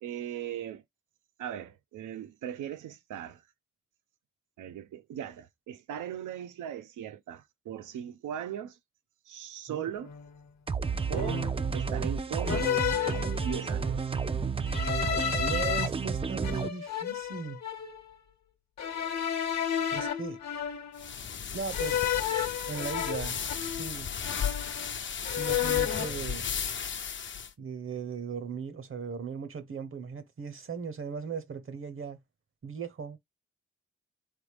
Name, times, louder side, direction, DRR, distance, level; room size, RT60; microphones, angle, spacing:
voice 1, 0.0-0.8 1.4-3.4 4.6-8.8 9.3-10.1 11.1-12.7 13.3-14.0, right 10 dB, 90° right, 0.6 m, -38 dB
sound 1, 10.0-10.3 11.1-11.7 12.5-13.9 14.7-15.9 16.4-18.0 18.8-21.1 21.7-24.0 24.2-25.0 25.2-26.2, left 9 dB, 65° left, 1.0 m, -32 dB
sound 2, 10.7-16.7, right 5 dB, 20° right, 0.3 m, -31 dB
voice 2, 15.4-17.6 19.9-20.4 21.5-22.0 22.7-23.4 23.7-24.1 25.3-26.5 27.6-32.2 32.6-33.2, right 5 dB, 45° right, 0.8 m, -38 dB
sound 3, 21.0-27.5, left 7 dB, 40° left, 0.5 m, -35 dB
3.9 x 3.3 x 3.3 m
cardioid pair, 75°, 30 cm